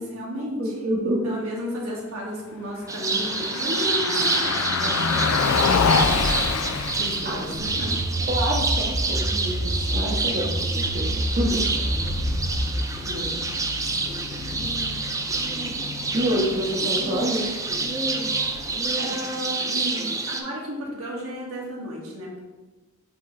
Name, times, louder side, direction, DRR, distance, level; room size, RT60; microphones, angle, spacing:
voice 1, 0.0-0.9 1.2-8.0 10.0-10.2 11.4-11.6 13.0-13.4 18.6-20.0 20.3-22.4, equal, 90° right, -4 dB, 1.9 m, -34 dB
voice 2, 0.6-1.2 4.1-4.3 7.2-7.4 8.3-11.6 16.1-17.5, right 1 dB, 40° right, -3 dB, 0.9 m, -27 dB
Car passing by, 2.8-18.9, left 5 dB, 75° left, 0.4 m, -29 dB
sound 1, 2.9-20.4, right 3 dB, 15° right, 0.4 m, -27 dB
sound 2, 7.6-12.8, equal, 55° left, 1.3 m, -28 dB
8.5 x 3.7 x 3.2 m, 1.2 s
head